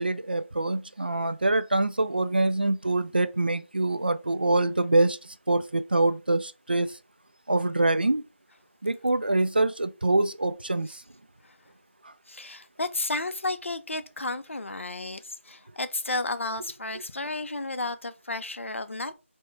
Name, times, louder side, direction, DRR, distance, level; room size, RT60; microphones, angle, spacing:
voice 1, 0.0-7.0 7.5-8.2 8.8-11.0 12.0-12.1, right 2 dB, 45° right, 0.4 m, -25 dB
voice 2, 12.3-19.1, left 2 dB, 65° left, 0.5 m, -32 dB
4.4 x 2.2 x 4.4 m
figure-of-eight pair, 180°, 7 cm